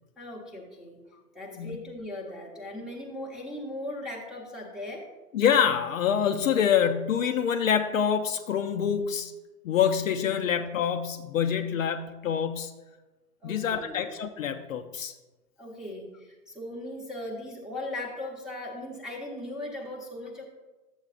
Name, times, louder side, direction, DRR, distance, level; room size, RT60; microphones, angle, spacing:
voice 1, 0.2-1.0 1.3-5.1 10.3-10.4 13.4-14.0 15.6-20.4, left 1 dB, ahead, -3 dB, 0.9 m, -38 dB
voice 2, 5.3-9.3 9.6-12.7 13.4-15.1, left 8 dB, 55° left, 6 dB, 0.6 m, -26 dB
11.5 x 8.0 x 2.4 m, 1.2 s
hypercardioid pair, 140°, 49 cm